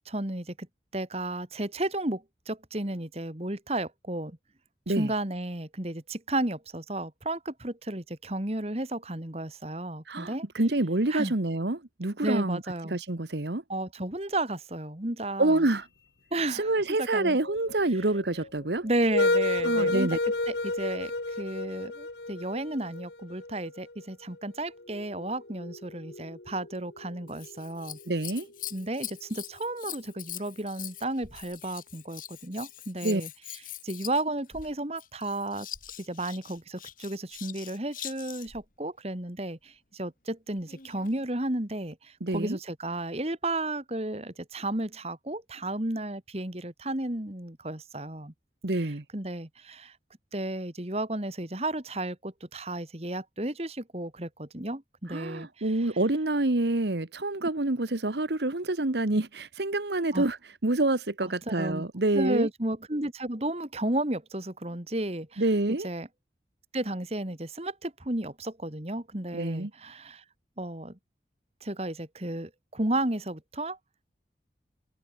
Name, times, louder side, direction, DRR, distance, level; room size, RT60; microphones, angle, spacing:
voice 1, 0.1-0.7 0.9-4.4 4.9-10.4 11.1-11.3 12.2-13.0 13.7-15.6 16.3-17.4 17.9-18.0 18.8-21.1 21.4-28.0 28.7-33.3 33.8-35.7 36.0-48.3 48.7-50.0 50.3-56.0 60.1-60.3 61.2-61.8 62.1-65.5 65.8-66.1 66.7-70.2 70.6-71.0 71.6-73.8, right 1 dB, 35° right, 2.1 m, -33 dB
voice 2, 10.1-12.6 12.9-13.6 15.4-15.8 16.5-18.8 19.6-20.2 28.1-28.5 33.0-33.2 42.2-42.6 48.6-49.0 55.1-60.4 60.6-62.5 65.4-65.9 69.3-69.7, right 2 dB, 70° right, 1.4 m, -27 dB
sound 1, 17.1-24.0 24.7-28.4, left 2 dB, 75° left, 2.3 m, -32 dB
Scissors, 27.3-38.6 40.6-41.2 41.9-42.0, left 12 dB, 50° left, 4.5 m, -43 dB
head